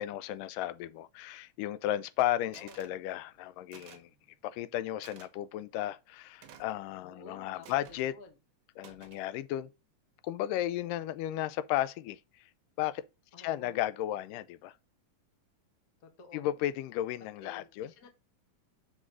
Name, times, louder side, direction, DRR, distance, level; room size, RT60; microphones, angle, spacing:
voice 1, 0.0-4.1 4.4-8.1 8.8-9.7 10.2-12.5 12.8-13.0 13.4-14.7 16.3-17.9, left 13 dB, 90° left, 2.2 m, -34 dB
voice 2, 2.4-3.0 7.0-8.4 13.3-13.8 16.0-16.6 17.4-18.1, left 3 dB, 75° left, 0.8 m, -53 dB
sound 1, 2.5-2.9 3.7-4.1 5.0-5.3 6.4-6.8 7.6-8.1 8.8-9.3, right 8 dB, 65° right, 1.4 m, -54 dB
6.1 x 3.8 x 6.0 m
omnidirectional pair, 3.7 m